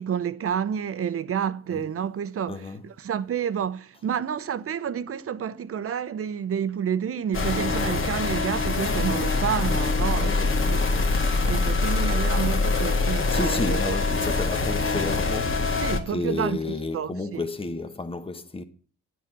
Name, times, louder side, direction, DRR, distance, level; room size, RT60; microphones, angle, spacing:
voice 1, 0.0-14.0 15.8-16.6 16.9-17.5, right 8 dB, 50° right, 0.8 m, -29 dB
voice 2, 2.5-2.8 10.2-10.6 12.9-18.6, left 3 dB, 20° left, 1.3 m, -32 dB
sound 1, 7.3-16.0, left 3 dB, 45° left, 2.0 m, -24 dB
10.0 x 6.7 x 7.6 m
cardioid pair, 90°, 30 cm